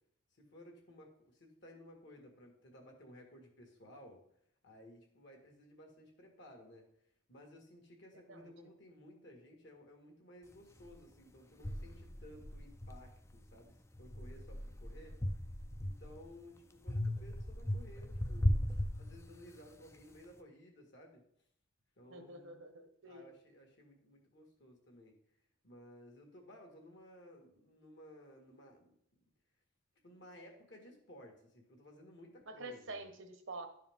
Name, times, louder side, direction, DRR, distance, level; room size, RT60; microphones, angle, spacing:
voice 1, 0.3-4.2 4.6-6.9 7.3-15.2 15.8-21.2 22.0-22.6 23.0-25.2 25.6-28.9 30.0-33.1, left 1 dB, 60° left, 2 dB, 1.8 m, -57 dB
sound 1, 10.8-10.9 11.6-13.5 13.9-16.3 16.9-19.6, left 1 dB, 15° left, 0.4 m, -37 dB
voice 2, 22.1-23.3 32.6-33.7, right 2 dB, 70° right, 7 dB, 1.0 m, -47 dB
11.5 x 4.7 x 3.6 m, 0.69 s
head